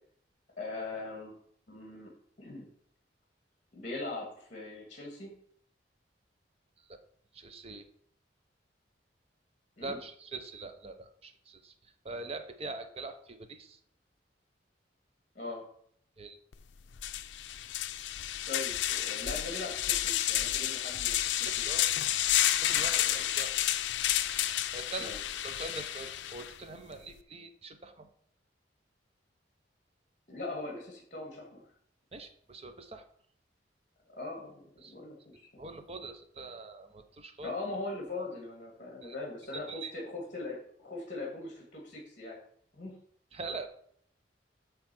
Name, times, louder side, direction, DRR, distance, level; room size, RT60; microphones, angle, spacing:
voice 1, 0.6-1.3 1.7-2.1 2.4-2.7 3.7-5.3 9.8-10.0 15.4-15.7 18.5-21.5 21.7-21.8 25.0-25.2 30.3-31.6 34.1-35.6 37.4-42.4 42.7-43.0, left 2 dB, 40° left, -2 dB, 1.8 m, -40 dB
voice 2, 7.3-7.9 9.8-11.7 12.0-13.8 16.2-16.4 21.3-21.9 22.6-23.6 24.7-25.1 25.4-28.1 32.1-33.0 34.8-34.9 35.6-37.5 39.0-39.2 39.5-39.9 43.3-43.7, right 3 dB, 35° right, 8 dB, 0.7 m, -43 dB
sound 1, 16.5-16.6 17.0-26.5, left 12 dB, 80° left, 0.4 m, -31 dB
8.4 x 3.3 x 6.1 m, 0.63 s
head